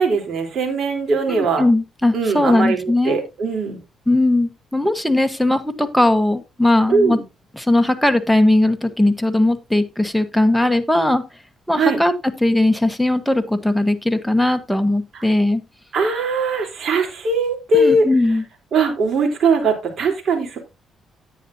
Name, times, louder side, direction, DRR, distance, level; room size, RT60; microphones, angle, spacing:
voice 1, 0.0-1.6 2.1-3.8 6.9-7.2 11.8-12.0 15.1-15.2 15.9-18.1 18.7-20.6, right 3 dB, 60° right, 2 dB, 3.7 m, -20 dB
voice 2, 1.3-3.2 4.1-7.2 7.5-11.2 11.7-12.1 12.4-15.6 17.7-18.4, left 1 dB, ahead, 8 dB, 1.3 m, -18 dB
10.0 x 9.3 x 2.8 m, 0.25 s
cardioid pair, 90°, 0 cm